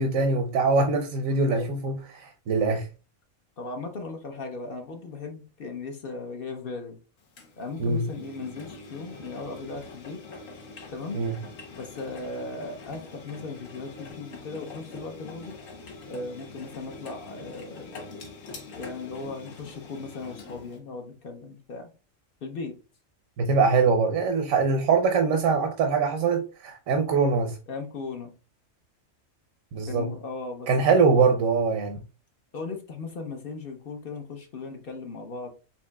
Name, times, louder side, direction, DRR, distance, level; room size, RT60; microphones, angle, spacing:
voice 1, 0.0-2.9 7.8-8.1 11.1-11.3 23.4-27.6 29.7-30.1 30.7-32.0, right 4 dB, 85° right, 1.1 m, -23 dB
voice 2, 3.6-7.0 7.6-10.2 10.9-11.2 11.8-15.6 16.1-18.0 18.8-21.9 22.4-22.8 27.7-28.3 29.9-31.0 32.5-35.5, left 3 dB, 50° left, 0.8 m, -37 dB
Engine, 7.4-20.8, left 3 dB, 75° left, 1.3 m, -44 dB
7.1 x 2.7 x 2.2 m
omnidirectional pair, 1.4 m